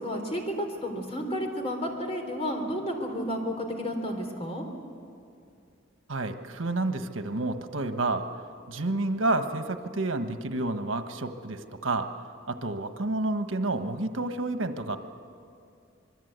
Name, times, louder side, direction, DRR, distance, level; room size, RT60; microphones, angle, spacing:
voice 1, 0.0-4.6, equal, 35° left, 3 dB, 3.7 m, -31 dB
voice 2, 6.1-8.3 8.7-12.1 12.5-15.0, right 2 dB, 90° right, 8 dB, 1.3 m, -29 dB
26.0 x 22.0 x 8.2 m, 2.4 s
head